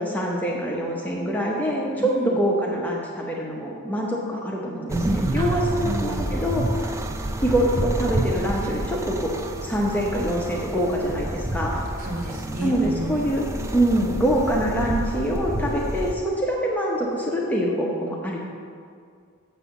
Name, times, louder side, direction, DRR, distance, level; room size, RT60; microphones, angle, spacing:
voice 1, 0.0-6.9 7.4-9.3 9.6-11.8 12.6-13.4 13.7-18.4, equal, 10° left, -3 dB, 0.8 m, -25 dB
voice 2, 2.0-2.4 5.3-6.4 11.7-13.3, right 3 dB, 40° right, -2 dB, 1.5 m, -32 dB
sound 1, 4.9-16.1, right 1 dB, 15° right, 0.4 m, -28 dB
7.4 x 5.5 x 7.0 m, 2.2 s
head